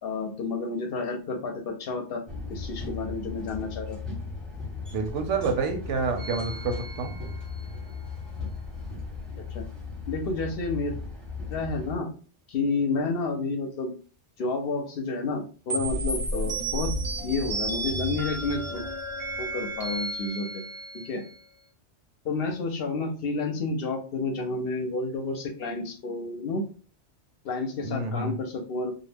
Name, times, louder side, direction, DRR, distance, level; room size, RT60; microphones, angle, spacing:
voice 1, 0.0-2.2 2.5-4.0 9.5-9.6 10.1-10.9 11.5-12.1 12.5-13.9 14.4-16.9 17.2-18.8 19.4-20.6 20.9-21.2 22.2-26.6 27.4-28.9, left 3 dB, 65° left, 4 dB, 0.7 m, -30 dB
sound 1, 2.3-12.0, left 4 dB, ahead, 0.7 m, -37 dB
voice 2, 4.9-7.1 27.8-28.4, right 4 dB, 85° right, 6 dB, 0.9 m, -28 dB
sound 2, 6.2-7.7 15.7-21.4, right 1 dB, 35° right, 0.6 m, -33 dB
2.3 x 2.0 x 3.2 m, 0.39 s
omnidirectional pair, 1.2 m